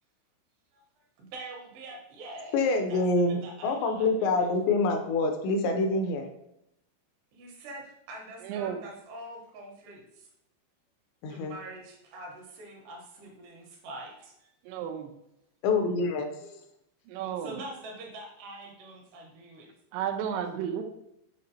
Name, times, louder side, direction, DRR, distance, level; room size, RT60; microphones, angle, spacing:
voice 1, 1.2-2.6 2.9-4.4 7.3-10.3 11.3-14.5 17.4-19.7, right 1 dB, 75° right, 0 dB, 3.0 m, -44 dB
voice 2, 2.5-6.3 11.2-11.6 15.6-16.6, left 3 dB, 80° left, 4 dB, 2.9 m, -26 dB
voice 3, 8.4-8.8 14.7-15.1 17.1-17.6 19.9-20.9, right 8 dB, 90° right, 5 dB, 3.1 m, -32 dB
7.7 x 5.1 x 2.8 m, 0.80 s
omnidirectional pair, 5.2 m